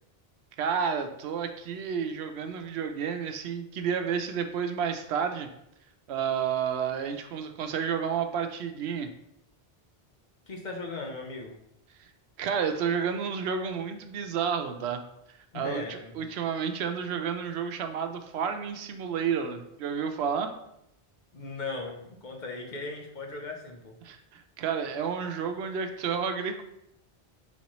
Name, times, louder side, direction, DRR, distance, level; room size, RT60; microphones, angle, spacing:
voice 1, 0.6-5.5 6.1-9.1 12.0-12.1 12.4-15.0 15.5-20.5 24.0-26.6, right 7 dB, 85° right, 7 dB, 0.9 m, -31 dB
voice 2, 10.5-11.5 15.5-16.3 21.3-24.0, left 3 dB, 50° left, 1 dB, 0.9 m, -38 dB
4.2 x 4.2 x 3.0 m, 0.79 s
omnidirectional pair, 1.1 m